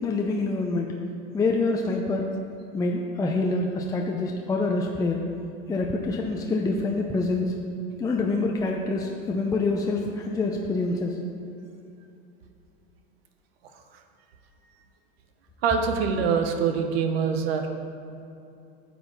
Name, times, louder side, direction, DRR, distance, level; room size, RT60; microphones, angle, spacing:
voice 1, 0.0-0.9 1.3-2.3 2.7-5.2 5.7-7.5 8.0-11.1, left 3 dB, 10° left, 0 dB, 0.5 m, -26 dB
voice 2, 15.6-17.7, right 6 dB, 85° right, 6 dB, 1.1 m, -24 dB
10.0 x 7.7 x 4.1 m, 2.7 s
supercardioid pair, 135°, 29 cm